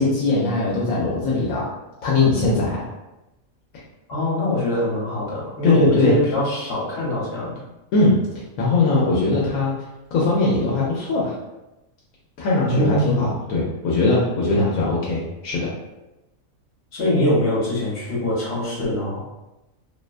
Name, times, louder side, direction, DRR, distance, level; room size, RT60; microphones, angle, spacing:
voice 1, 0.0-1.7 2.0-2.9 5.6-6.2 7.9-8.2 8.6-9.7 10.1-11.4 12.4-15.7, left 3 dB, 80° left, -5 dB, 1.0 m, -20 dB
voice 2, 4.1-7.5 12.7-13.3 16.9-19.2, left 1 dB, 50° left, -6 dB, 1.1 m, -23 dB
2.6 x 2.2 x 2.4 m, 0.97 s
omnidirectional pair, 1.5 m